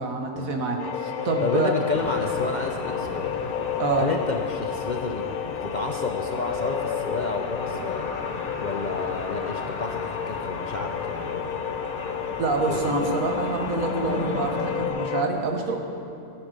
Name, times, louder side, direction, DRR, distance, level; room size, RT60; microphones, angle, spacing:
voice 1, 0.0-1.7 3.8-4.1 12.4-15.8, right 3 dB, 75° right, 3 dB, 1.7 m, -26 dB
sound 1, 0.8-15.2, left 8 dB, 90° left, 1.2 m, -31 dB
voice 2, 1.4-3.4 4.0-8.1 8.6-11.5 12.1-12.2 12.7-12.8 15.3-15.4, left 3 dB, 50° left, 3 dB, 0.6 m, -31 dB
sound 2, 1.9-14.9, left 1 dB, 30° left, 1.1 m, -36 dB
15.0 x 9.2 x 6.6 m, 2.7 s
omnidirectional pair, 1.5 m